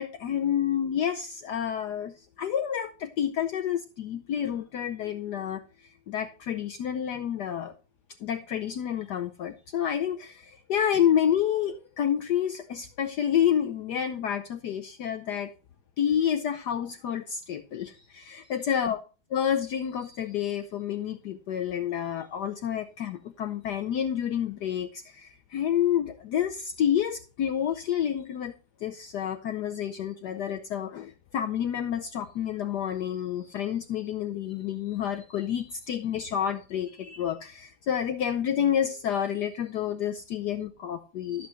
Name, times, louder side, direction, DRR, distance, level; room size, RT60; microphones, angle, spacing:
voice 1, 0.0-7.7 8.2-15.5 16.0-19.0 19.3-28.5 28.8-41.5, left 9 dB, 65° left, 1.2 m, -29 dB
13.0 x 8.4 x 3.1 m
omnidirectional pair, 2.2 m